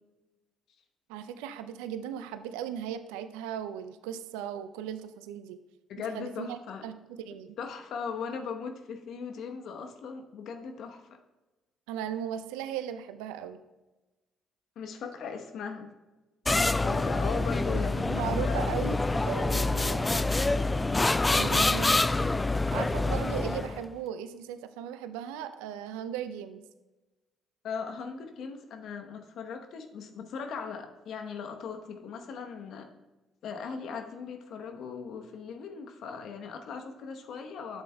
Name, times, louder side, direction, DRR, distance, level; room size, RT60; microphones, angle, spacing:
voice 1, 1.1-5.6 6.1-7.6 11.9-13.6 17.6-17.8 18.1-20.4 21.3-22.1 22.7-26.6, right 9 dB, 75° right, 11 dB, 0.5 m, -37 dB
voice 2, 5.9-6.9 7.6-11.0 14.8-15.9 16.4-18.8 27.6-32.9 33.4-37.8, left 6 dB, 60° left, 5 dB, 1.0 m, -39 dB
sound 1, 16.5-23.9, left 2 dB, 20° left, 0.3 m, -26 dB
11.5 x 8.0 x 2.3 m, 1.1 s
hypercardioid pair, 45°, 0 cm